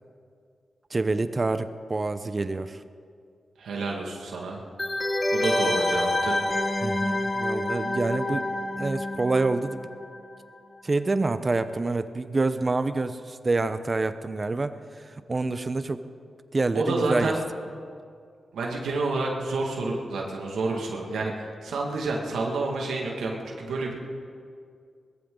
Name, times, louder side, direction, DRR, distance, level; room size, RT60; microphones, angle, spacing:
voice 1, 0.9-2.8 6.8-8.5 8.8-9.9 10.8-16.0 16.5-17.3 21.2-21.3, right 3 dB, 35° right, 11 dB, 0.8 m, -27 dB
voice 2, 3.6-4.6 5.3-6.4 16.7-17.4 18.5-23.9, right 3 dB, 90° right, -1 dB, 2.0 m, -29 dB
sound 1, 4.8-10.3 10.5-10.6, left 1 dB, 30° left, 1.3 m, -27 dB
20.5 x 14.5 x 3.9 m, 2.2 s
cardioid pair, 60°, 0 cm